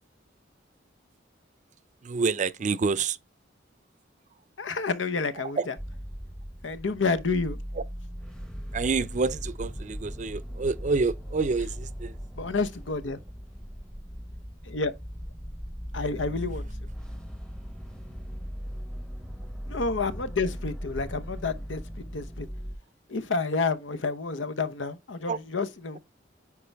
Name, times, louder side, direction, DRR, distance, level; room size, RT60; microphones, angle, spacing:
voice 1, 2.0-3.2 5.3-5.7 7.7-7.8 8.7-12.1 25.3-25.4, right 4 dB, 40° right, 0.5 m, -28 dB
voice 2, 4.6-5.7 6.6-7.6 12.3-13.2 14.6-14.9 15.9-16.9 19.7-22.5 23.1-26.0, left 4 dB, 85° left, 0.9 m, -29 dB
sound 1, 5.8-22.8, equal, 5° left, 0.8 m, -38 dB
9.5 x 4.6 x 3.4 m
head